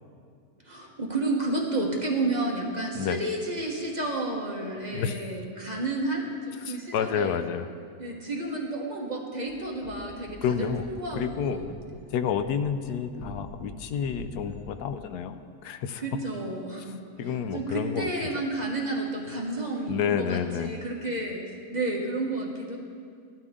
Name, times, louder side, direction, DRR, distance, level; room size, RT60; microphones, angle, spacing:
voice 1, 0.6-7.4 8.0-11.7 16.0-17.0 17.5-21.4 21.7-22.8, right 2 dB, 30° right, -1 dB, 1.4 m, -31 dB
voice 2, 6.6-7.7 10.4-10.8 11.1-11.6 12.1-16.0 17.2-18.4 19.9-20.8, left 8 dB, 85° left, 10 dB, 1.2 m, -29 dB
sound 1, 9.4-14.8, left 1 dB, 50° left, 2.1 m, -45 dB
15.5 x 12.0 x 3.7 m, 2.2 s
omnidirectional pair, 1.6 m